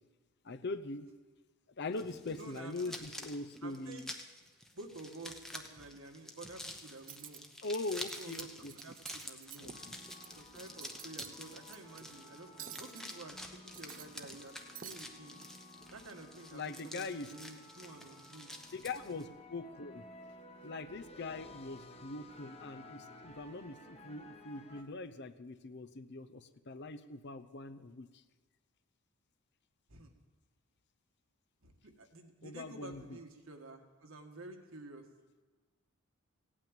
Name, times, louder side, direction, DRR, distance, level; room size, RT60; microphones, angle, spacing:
voice 1, 0.4-1.1 1.8-4.1 7.6-8.7 9.6-9.7 16.5-17.3 18.7-20.1 20.6-28.2 32.4-33.2, left 3 dB, 50° left, 10 dB, 0.7 m, -42 dB
sound 1, 1.9-19.2, left 1 dB, ahead, 0.8 m, -49 dB
voice 2, 2.3-3.0 3.6-4.1 4.7-7.5 8.2-8.5 8.7-9.7 10.4-13.4 13.6-14.5 14.8-15.4 15.9-18.5 29.9-30.1 31.6-35.1, right 2 dB, 65° right, 4 dB, 1.7 m, -51 dB
Cutlery silverware, 7.0-7.4 7.8-8.4 8.7-10.3 10.6-11.4 11.7-12.0 12.6-13.2 13.6-14.5 14.8-15.0, right 10 dB, 35° right, 0.5 m, -49 dB
sound 2, 9.7-24.8, left 1 dB, 25° left, 1.1 m, -55 dB
16.5 x 8.8 x 9.0 m, 1.4 s
head